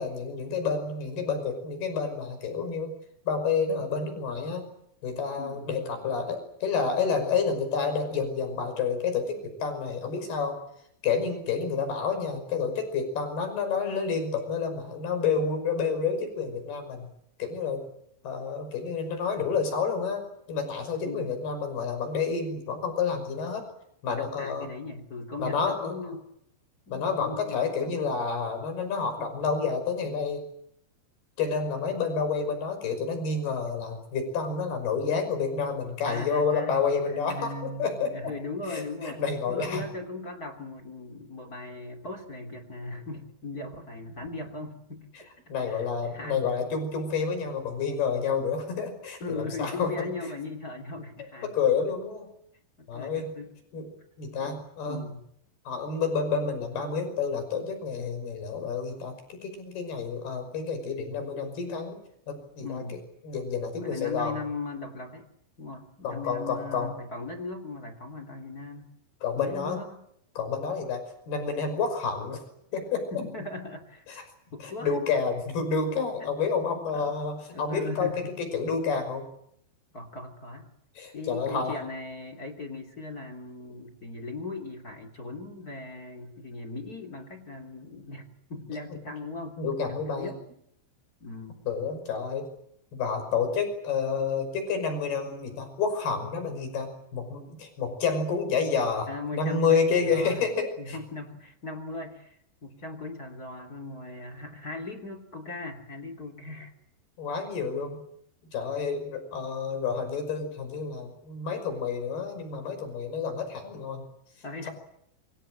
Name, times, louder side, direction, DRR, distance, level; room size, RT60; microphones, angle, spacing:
voice 1, 0.0-2.9 3.3-4.7 5.0-10.6 11.0-17.1 17.4-17.8 18.2-23.6 24.0-24.7 25.4-26.1 26.9-30.5 31.4-38.3 38.7-39.8 45.5-50.1 51.4-52.3 52.9-53.3 53.7-53.9 54.2-55.0 55.7-62.0 62.3-62.8 63.2-64.4 66.0-66.9 69.2-69.8 70.4-71.0 71.3-72.4 72.7-73.1 74.1-74.2 74.6-79.2 81.0-81.8 89.6-90.3 91.7-92.5 92.9-101.0 107.2-108.0 108.5-114.0, left 5 dB, 65° left, 8 dB, 7.6 m, -29 dB
voice 2, 24.2-26.3 26.9-28.1 36.1-36.8 37.1-39.2 39.5-45.3 45.6-46.7 49.2-51.5 52.8-53.5 54.4-54.6 54.8-55.2 62.6-63.0 63.8-65.3 65.6-68.9 69.4-70.0 73.1-74.2 74.5-75.0 76.2-76.3 76.9-77.1 77.5-78.5 79.9-80.7 81.1-89.6 89.9-90.4 91.2-91.6 99.1-100.4 100.8-106.7 114.4-114.7, left 3 dB, 25° left, 9 dB, 2.8 m, -39 dB
27.5 x 24.5 x 7.8 m, 0.72 s
omnidirectional pair, 4.9 m